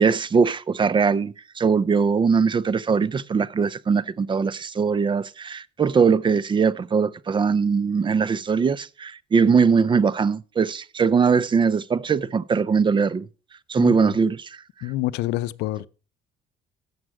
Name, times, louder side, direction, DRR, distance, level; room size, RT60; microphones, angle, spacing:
voice 1, 0.0-13.2 13.7-14.4, right 5 dB, 30° right, 0.6 m, -21 dB
voice 2, 13.8-14.2 14.8-15.9, left 16 dB, 85° left, 0.5 m, -27 dB
12.5 x 8.6 x 4.8 m
cardioid pair, 110°, 17 cm